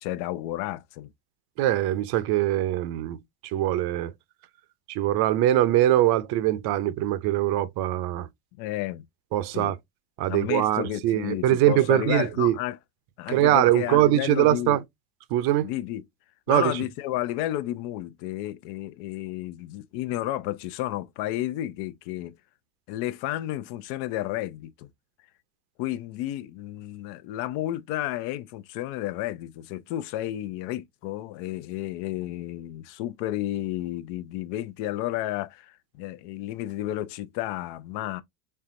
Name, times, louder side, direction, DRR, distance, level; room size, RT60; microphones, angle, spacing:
voice 1, 0.0-1.1 8.6-9.0 9.5-9.8 10.3-12.8 13.2-14.8 15.6-16.0 16.5-22.3 22.9-24.9 25.8-38.2, left 14 dB, 60° left, 0.7 m, -32 dB
voice 2, 1.6-3.2 3.5-4.1 4.9-8.3 9.3-9.8 10.2-12.5 13.3-14.8 15.3-15.7 16.5-16.8, right 13 dB, 55° right, 0.7 m, -22 dB
4.4 x 3.4 x 2.5 m
supercardioid pair, 100°, 46 cm